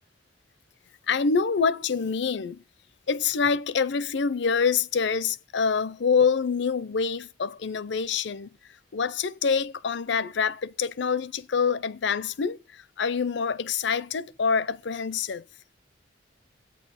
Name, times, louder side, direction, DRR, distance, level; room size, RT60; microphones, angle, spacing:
voice 1, 1.1-2.6 3.1-8.5 8.9-15.4, left 5 dB, 70° left, 0.6 m, -26 dB
10.5 x 8.7 x 5.6 m
head